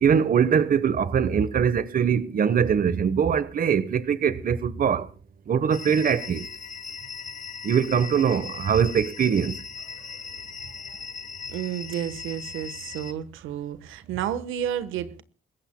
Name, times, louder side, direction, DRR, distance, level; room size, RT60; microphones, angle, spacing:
voice 1, 0.0-5.0 5.5-6.4 7.6-9.5, right 7 dB, 45° right, 1.1 m, -22 dB
synthetic ice, 5.7-13.1, left 5 dB, 40° left, 1.4 m, -39 dB
voice 2, 9.9-10.2 10.8-11.0 11.5-15.2, right 10 dB, 90° right, 1.2 m, -32 dB
28.0 x 15.5 x 2.2 m
cardioid pair, 90°, 20 cm